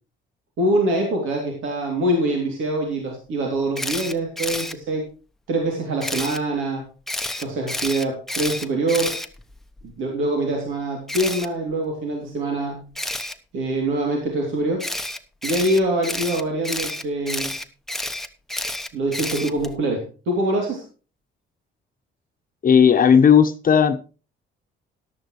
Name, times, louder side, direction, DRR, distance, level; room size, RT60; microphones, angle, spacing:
voice 1, 0.6-5.1 5.5-6.8 7.4-9.2 9.8-12.9 13.5-14.9 15.4-17.5 18.9-20.8, right 1 dB, 80° right, 1 dB, 2.9 m, -24 dB
Camera, 3.8-4.7 6.0-6.4 7.1-9.8 11.1-11.5 13.0-13.3 14.8-19.7, left 1 dB, ahead, 1.0 m, -29 dB
voice 2, 22.6-24.0, left 7 dB, 45° left, 8 dB, 1.0 m, -14 dB
14.0 x 11.5 x 3.1 m, 0.36 s
cardioid pair, 90°, 20 cm